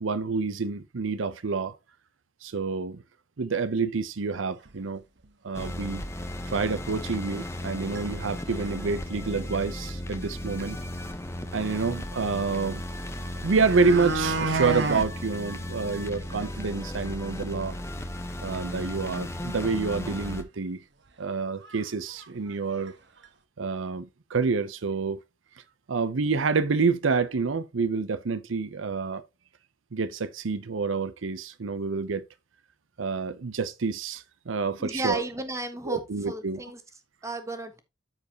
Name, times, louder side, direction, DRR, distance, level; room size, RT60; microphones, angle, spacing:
voice 1, 0.0-1.7 2.4-3.0 3.4-5.0 5.4-6.0 6.5-10.8 11.5-12.8 13.4-17.8 18.4-20.8 21.2-22.9 23.6-25.2 25.9-29.2 29.9-32.2 33.0-35.2 35.9-36.6, right 4 dB, 80° right, 0.7 m, -28 dB
sound 1, 4.6-4.7 5.2-5.3 5.7-5.8 6.7-6.8 7.4-7.7 7.9-8.0 8.4-8.8 10.2-10.3 10.6-10.7 13.0-13.1 13.4-15.1 15.5-15.6 15.9-16.0 16.4-16.5 16.8-16.9 19.7-19.8 20.2-20.3 21.1-21.2 21.6-21.8 22.1-22.9 23.2-23.3, right 3 dB, 60° right, 1.2 m, -30 dB
sound 2, 5.5-20.4, left 1 dB, 15° left, 1.0 m, -36 dB
voice 2, 34.8-36.0 36.3-36.8 37.2-37.8, right 2 dB, 15° right, 1.3 m, -33 dB
13.5 x 4.7 x 2.9 m
head